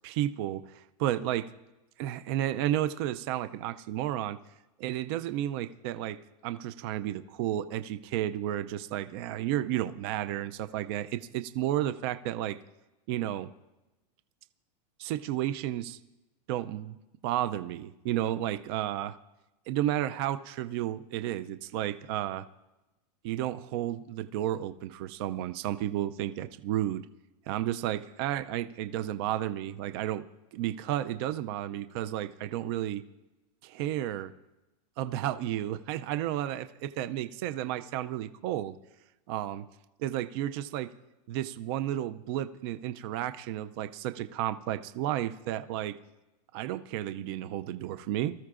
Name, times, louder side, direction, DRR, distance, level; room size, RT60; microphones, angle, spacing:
voice 1, 0.0-1.5 2.0-4.4 4.8-6.2 6.4-12.6 13.1-13.5 15.0-16.0 16.5-17.0 17.2-19.2 19.7-22.5 23.2-27.1 27.5-30.2 30.5-33.0 33.6-34.3 35.0-38.8 39.3-39.6 40.0-40.9 41.3-46.0 46.5-48.3, right 12 dB, 40° right, 11 dB, 0.4 m, -32 dB
24.0 x 14.0 x 2.5 m, 1.0 s
supercardioid pair, 170°, 20 cm